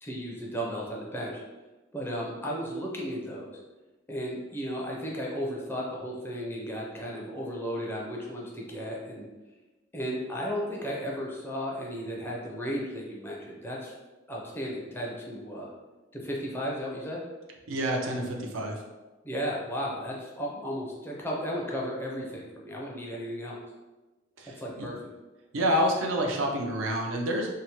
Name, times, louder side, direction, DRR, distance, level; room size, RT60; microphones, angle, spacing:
voice 1, 0.0-1.4 1.9-3.6 4.1-9.3 9.9-13.9 14.3-15.7 16.1-17.2 19.2-23.6 24.6-25.0, equal, 10° left, -3 dB, 0.4 m, -34 dB
voice 2, 17.7-18.8 24.4-24.9 25.5-27.5, equal, 85° right, 1 dB, 0.5 m, -28 dB
2.7 x 2.0 x 2.8 m, 1.2 s
head